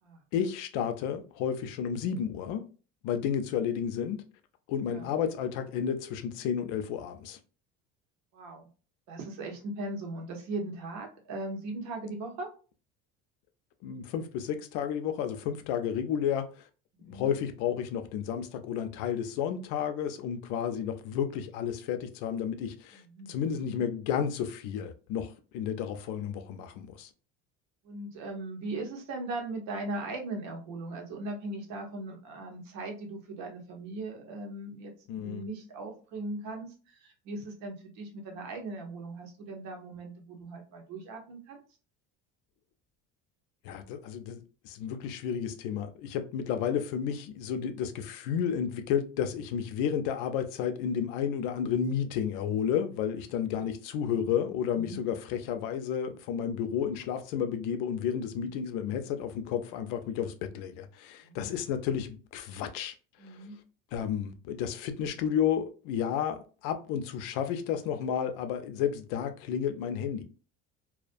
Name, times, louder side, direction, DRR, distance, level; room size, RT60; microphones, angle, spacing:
voice 1, 0.3-2.6 3.0-4.2 4.7-7.4 13.8-16.5 17.0-23.0 23.3-27.1 35.1-35.4 43.6-62.9 63.9-70.2, left 8 dB, 85° left, 0.5 m, -32 dB
voice 2, 8.3-8.7 9.1-12.5 16.9-17.3 22.9-23.3 27.8-34.9 35.2-41.6 54.7-55.1 58.4-58.6 61.2-61.5 63.2-63.6, right 2 dB, 65° right, 0.9 m, -39 dB
2.4 x 2.1 x 2.5 m
cardioid pair, 160°, 31 cm